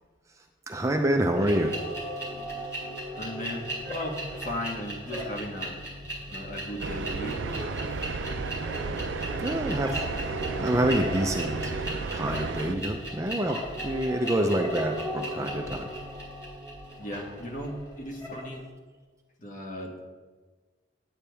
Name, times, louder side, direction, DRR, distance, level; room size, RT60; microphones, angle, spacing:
voice 1, 0.7-1.8 9.4-10.1 10.4-11.9 12.1-15.9, right 1 dB, 15° right, 4 dB, 0.5 m, -27 dB
sound 1, 1.3-18.5, equal, 15° left, 2.9 m, -36 dB
voice 2, 2.3-5.8 6.3-7.4 17.0-18.6 19.4-20.1, equal, 45° left, 1 dB, 1.4 m, -37 dB
sound 2, 6.8-12.8, right 4 dB, 80° right, 0.5 m, -33 dB
9.4 x 8.6 x 3.4 m, 1.4 s
head